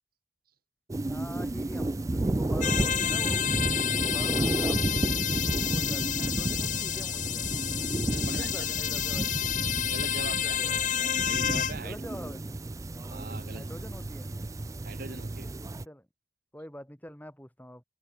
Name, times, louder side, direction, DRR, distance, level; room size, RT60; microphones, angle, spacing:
sound 1, 0.9-15.8, right 2 dB, 15° right, 0.3 m, -32 dB
voice 1, 1.1-3.4 4.0-4.9 5.7-7.5 8.2-9.3 10.1-10.8 11.8-12.4 13.5-14.4 15.8-16.1 16.5-17.8, equal, 10° left, 2.8 m, -45 dB
sound 2, 2.6-11.7, left 10 dB, 40° left, 0.8 m, -30 dB
voice 2, 8.1-8.8 9.9-10.6 11.3-12.0 13.1-13.7 14.8-15.5, right 3 dB, 45° right, 1.8 m, -41 dB
head